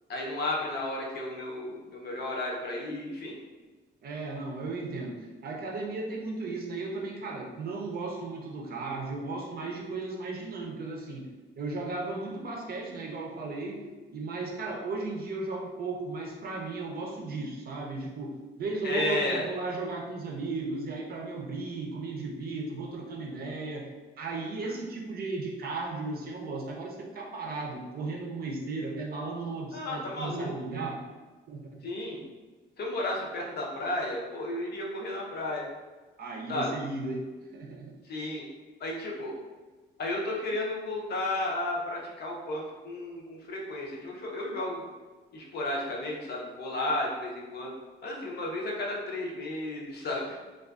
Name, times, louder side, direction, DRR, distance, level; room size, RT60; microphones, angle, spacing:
voice 1, 0.1-3.3 18.8-19.5 24.6-24.7 29.7-30.5 31.8-32.2 32.8-35.7 36.5-36.7 38.0-38.5 38.8-39.4 40.0-44.8 45.3-47.7 48.0-50.4, left 1 dB, 55° left, -2 dB, 0.6 m, -33 dB
voice 2, 4.0-23.9 24.2-31.0 31.5-31.8 36.2-38.0, right 3 dB, 50° right, 0 dB, 0.5 m, -35 dB
2.4 x 2.3 x 2.3 m, 1.3 s
cardioid pair, 90°, 20 cm